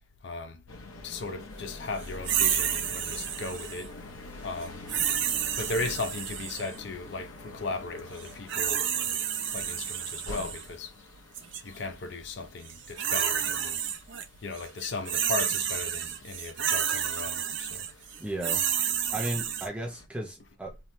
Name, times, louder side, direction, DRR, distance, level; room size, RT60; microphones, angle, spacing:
voice 1, 0.2-0.6 1.0-3.9 4.4-4.8 5.6-10.9 11.6-13.8 14.4-17.9, left 3 dB, 60° left, 0.5 m, -36 dB
sound 1, 0.7-20.1, left 2 dB, 90° left, 0.8 m, -47 dB
sound 2, 2.2-3.9 4.9-6.7 8.2-10.6 11.3-11.6 12.7-14.2 14.5-19.7, right 9 dB, 60° right, 0.5 m, -30 dB
voice 2, 18.2-18.6 19.1-20.8, right 1 dB, 5° right, 0.7 m, -35 dB
2.9 x 2.0 x 3.1 m
head